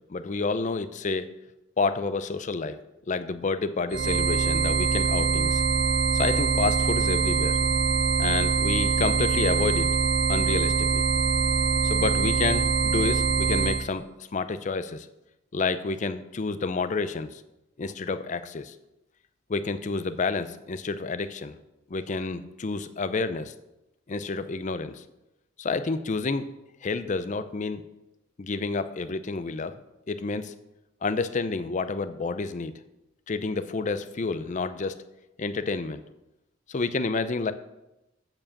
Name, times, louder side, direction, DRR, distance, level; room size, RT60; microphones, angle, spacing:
voice 1, 0.1-1.3 1.8-2.8 3.1-5.6 6.1-7.6 8.2-9.9 10.3-11.0 11.8-14.0 14.3-15.1 15.5-17.4 17.8-18.7 19.5-21.6 21.9-23.5 24.1-25.0 25.6-26.5 26.8-27.8 28.4-29.7 30.1-30.5 31.0-32.7 33.3-35.0 35.4-36.0 36.7-37.5, left 4 dB, 40° left, 12 dB, 0.5 m, -29 dB
sound 1, 3.9-13.9, right 5 dB, 65° right, 0.5 m, -24 dB
7.6 x 4.8 x 7.1 m, 0.93 s
head